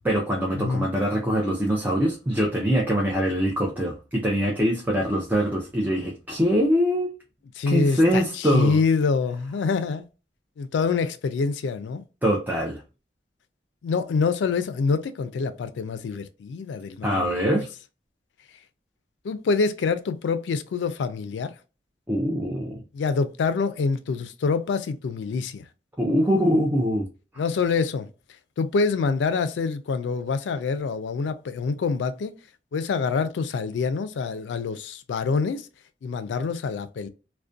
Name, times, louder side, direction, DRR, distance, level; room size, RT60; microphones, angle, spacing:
voice 1, 0.0-7.1 7.7-8.8 12.2-12.8 17.0-17.7 22.1-22.8 26.0-27.1, equal, 10° right, 0.4 m, -23 dB
voice 2, 0.6-0.9 7.6-10.1 10.6-12.0 13.8-17.6 19.2-21.6 22.9-25.7 27.4-28.1 28.6-32.3 32.7-35.7 36.0-37.1, left 4 dB, 80° left, 0.3 m, -26 dB
2.4 x 2.1 x 2.5 m
head